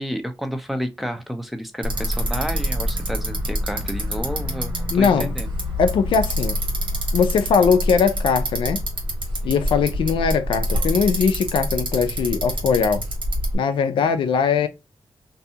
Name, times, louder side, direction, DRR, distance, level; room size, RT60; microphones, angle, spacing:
voice 1, 0.0-5.5 9.4-9.5, equal, ahead, 0.6 m, -30 dB
Bicycle, 1.8-13.6, equal, 75° right, 1.2 m, -26 dB
voice 2, 4.9-5.4 5.8-6.6 7.1-8.8 9.4-13.0 13.5-14.7, left 6 dB, 85° left, 0.4 m, -20 dB
2.6 x 2.3 x 2.7 m
cardioid pair, 60°, 9 cm